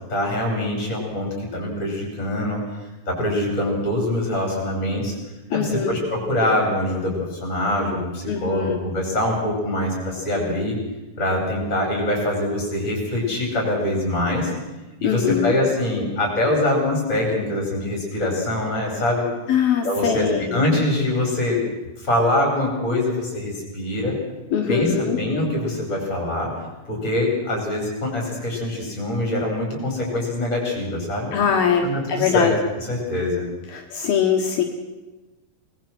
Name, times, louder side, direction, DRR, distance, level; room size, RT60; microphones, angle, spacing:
voice 1, 0.1-2.8 3.1-5.1 5.5-10.8 11.2-14.5 15.0-19.3 19.8-21.6 22.0-24.2 24.7-24.9 25.1-26.5 26.9-31.3 31.8-32.5 32.9-33.5, left 1 dB, 15° left, 0 dB, 5.4 m, -24 dB
voice 2, 5.5-6.0 8.3-8.8 15.0-15.6 19.5-20.6 24.5-25.2 31.3-32.5 33.7-34.6, left 7 dB, 65° left, 3 dB, 3.2 m, -22 dB
25.0 x 19.5 x 6.2 m, 1.1 s
omnidirectional pair, 5.0 m